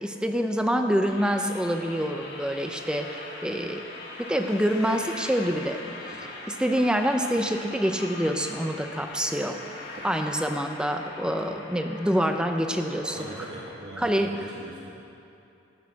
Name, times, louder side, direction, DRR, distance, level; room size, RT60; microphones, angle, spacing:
voice 1, 0.0-3.8 4.2-5.8 6.5-9.6 10.0-13.2 14.0-14.3, equal, 5° right, 5 dB, 0.6 m, -26 dB
sound 1, 0.8-1.1 1.6-1.7 2.0-3.1 3.4-3.6 4.0-4.7 4.9-7.8 8.5-11.1 11.4-11.8 12.1-14.1, right 1 dB, 45° right, 1.6 m, -50 dB
sound 2, 1.0-13.8, left 2 dB, 60° left, 1.7 m, -41 dB
voice 2, 13.1-14.9, right 1 dB, 60° right, -4 dB, 1.3 m, -41 dB
16.5 x 6.3 x 5.9 m, 2.7 s
head